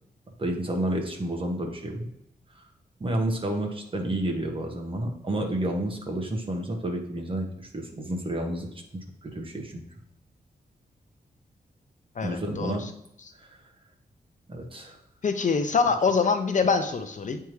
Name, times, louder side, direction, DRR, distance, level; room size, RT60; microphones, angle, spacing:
voice 1, 0.4-2.1 3.0-8.7 8.9-9.8 12.2-12.8 13.4-13.6 14.5-15.0, right 1 dB, 30° right, 1 dB, 1.3 m, -30 dB
voice 2, 12.2-12.8 15.2-17.4, left 5 dB, 50° left, 7 dB, 0.6 m, -24 dB
9.1 x 3.6 x 3.1 m, 0.79 s
wide cardioid pair, 110°, 17 cm